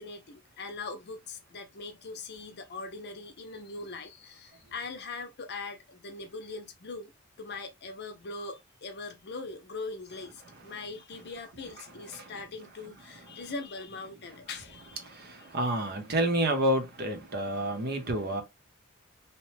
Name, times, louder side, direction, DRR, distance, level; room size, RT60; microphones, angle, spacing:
voice 1, 0.0-7.1 7.4-15.1, left 3 dB, 55° left, 0.6 m, -41 dB
voice 2, 15.0-18.4, right 1 dB, 50° right, 0.8 m, -29 dB
2.9 x 2.1 x 3.2 m
head